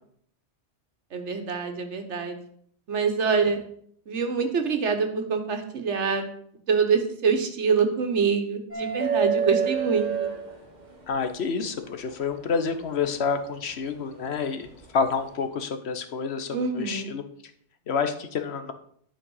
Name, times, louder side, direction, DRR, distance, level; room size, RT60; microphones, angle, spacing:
voice 1, 1.1-2.4 2.9-3.6 4.1-6.3 6.7-10.3 16.5-17.1, right 5 dB, 90° right, 6 dB, 1.5 m, -25 dB
sound 1, 8.7-11.1 12.8-12.9 14.7-14.9, right 6 dB, 40° right, 1.7 m, -27 dB
voice 2, 11.1-17.2 17.9-18.7, left 5 dB, 70° left, 9 dB, 1.2 m, -28 dB
9.8 x 5.8 x 5.5 m, 0.63 s
omnidirectional pair, 1.2 m